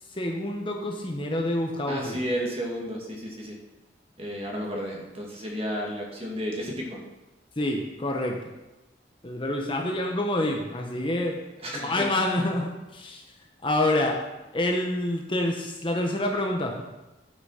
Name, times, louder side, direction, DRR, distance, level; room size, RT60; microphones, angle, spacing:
voice 1, 0.1-2.2 7.6-8.4 9.2-11.4 11.7-13.2 13.6-14.2 14.5-16.8, left 1 dB, 25° left, 1 dB, 1.0 m, -27 dB
voice 2, 1.9-3.5 4.2-7.0 11.6-12.1, equal, 30° right, -1 dB, 2.0 m, -32 dB
11.5 x 5.9 x 5.6 m, 1.0 s
head